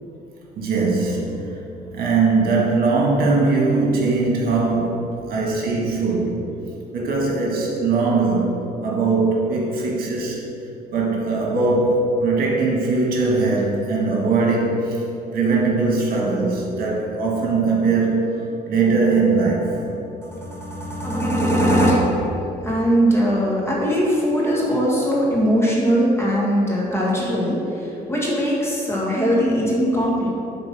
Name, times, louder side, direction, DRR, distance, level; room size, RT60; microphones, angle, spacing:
voice 1, 0.6-1.6 1.9-6.4 6.9-8.6 8.8-10.4 10.9-15.0 15.3-18.3 18.7-19.8 23.7-24.2 24.4-25.1, right 3 dB, 60° right, -2 dB, 1.6 m, -21 dB
voice 2, 20.2-22.0 22.6-30.3, equal, 15° left, -4 dB, 1.7 m, -20 dB
7.9 x 3.9 x 6.0 m, 2.8 s
cardioid pair, 110°, 17 cm